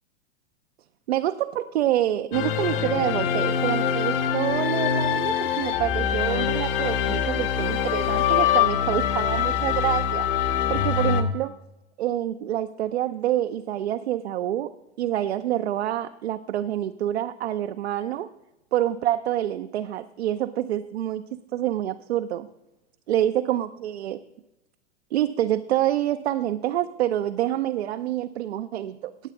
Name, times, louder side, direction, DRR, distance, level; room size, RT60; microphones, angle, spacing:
voice 1, 1.1-10.3 10.7-11.6 12.0-18.3 18.7-21.2 21.5-22.5 23.1-24.2 25.1-29.1, right 12 dB, 70° right, 9 dB, 0.6 m, -27 dB
sound 1, 2.3-11.2, left 8 dB, 55° left, 1.3 m, -24 dB
17.0 x 8.1 x 3.6 m, 0.94 s
figure-of-eight pair, 100°, 34 cm